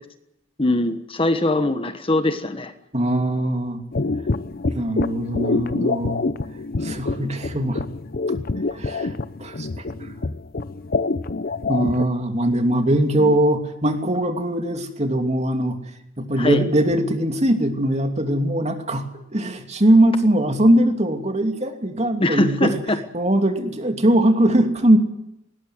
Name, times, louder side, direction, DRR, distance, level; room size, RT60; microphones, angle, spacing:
voice 1, 0.6-2.7 13.2-13.4 16.4-16.6 22.2-23.0, left 2 dB, 30° left, 9 dB, 1.3 m, -22 dB
voice 2, 2.9-3.8 4.6-6.2 6.8-7.8 8.7-9.1 9.4-10.1 11.7-15.8 16.2-19.1 19.3-22.7 23.1-25.0, right 1 dB, 35° right, 5 dB, 2.8 m, -21 dB
sound 1, 3.9-12.0, left 3 dB, 50° left, 0.7 m, -26 dB
20.0 x 19.5 x 8.0 m, 0.82 s
head